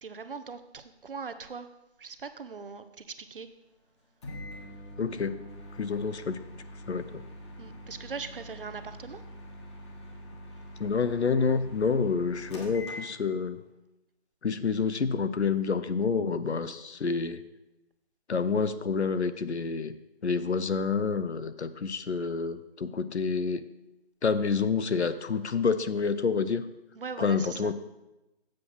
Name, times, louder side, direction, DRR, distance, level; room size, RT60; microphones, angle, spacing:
voice 1, 0.0-1.7 2.0-3.5 7.6-9.2 26.9-27.7, right 5 dB, 55° right, 11 dB, 0.7 m, -40 dB
Microwave oven, 4.2-13.6, left 1 dB, 25° left, 1.3 m, -44 dB
voice 2, 5.0-5.5 5.8-6.4 6.9-7.2 10.8-13.6 14.4-17.4 18.3-20.0 20.2-23.6 24.2-26.6 27.2-27.7, left 5 dB, 80° left, 12 dB, 0.8 m, -28 dB
7.7 x 5.5 x 6.1 m, 0.97 s
figure-of-eight pair, 155°, 33 cm